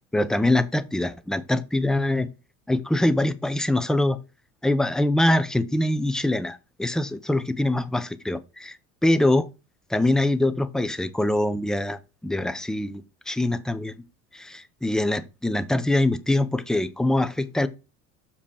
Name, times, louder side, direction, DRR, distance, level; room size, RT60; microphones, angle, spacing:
voice 1, 0.1-2.3 2.7-4.2 4.6-8.8 9.0-9.5 9.9-13.9 14.3-17.7, left 1 dB, ahead, 0.6 m, -24 dB
6.9 x 5.1 x 4.3 m
supercardioid pair, 100°, 35 cm